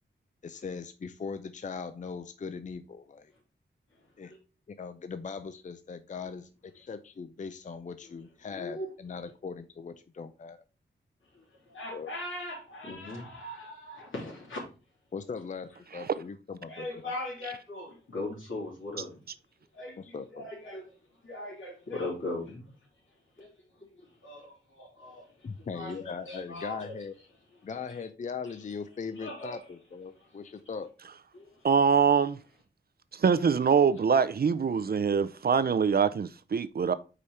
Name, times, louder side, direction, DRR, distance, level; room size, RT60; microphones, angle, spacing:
voice 1, 0.4-3.3 4.2-4.3 4.8-10.6 11.9-12.1 15.1-17.1 20.0-20.5 25.4-27.1 27.6-30.9, left 5 dB, 40° left, 0.5 m, -40 dB
voice 2, 8.5-8.9 11.3-14.6 16.7-19.2 19.7-20.8 21.2-22.7 23.4-23.5 23.8-23.9 24.2-25.3 25.7-27.0 29.2-29.6 30.1-30.2 31.3-31.5, left 2 dB, 85° left, 3.0 m, -39 dB
voice 3, 31.6-32.4 33.1-36.9, right 6 dB, 50° right, 0.5 m, -24 dB
5.0 x 4.4 x 5.4 m
wide cardioid pair, 110°, 20 cm